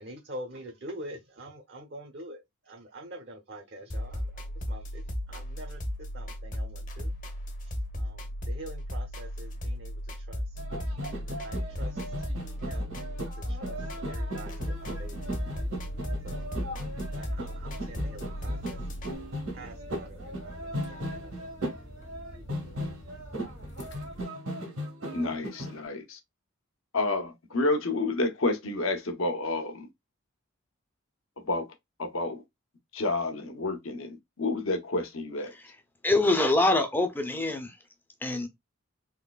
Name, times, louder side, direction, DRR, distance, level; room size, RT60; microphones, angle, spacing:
voice 1, 0.0-7.1 7.6-10.6 10.8-12.3 12.7-13.0 13.3-15.3 16.2-18.8 19.5-21.5, right 1 dB, 50° right, 0.7 m, -46 dB
sound 1, 3.9-19.1, equal, 40° left, 0.8 m, -35 dB
sound 2, 10.6-25.9, equal, 80° right, 1.6 m, -37 dB
sound 3, 14.9-24.2, equal, 55° left, 1.2 m, -47 dB
voice 2, 25.1-26.2 26.9-29.9 31.4-31.7 32.0-32.4 32.9-35.5, left 2 dB, 75° left, 0.9 m, -29 dB
voice 3, 36.0-37.7 38.2-38.5, left 2 dB, 10° left, 0.5 m, -24 dB
3.7 x 3.0 x 2.3 m
head